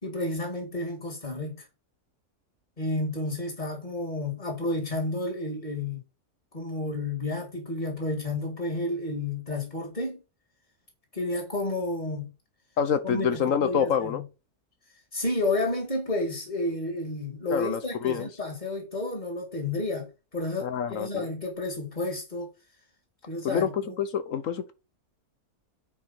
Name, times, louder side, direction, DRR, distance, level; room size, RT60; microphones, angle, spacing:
voice 1, 0.0-1.7 2.8-6.0 6.5-10.2 11.1-12.3 13.0-14.2 15.1-22.5 23.3-24.0, left 2 dB, 30° left, 2.2 m, -31 dB
voice 2, 12.8-14.2 17.5-18.3 20.6-21.3 23.4-24.7, left 7 dB, 65° left, 1.1 m, -27 dB
9.3 x 4.9 x 4.3 m
omnidirectional pair, 1.6 m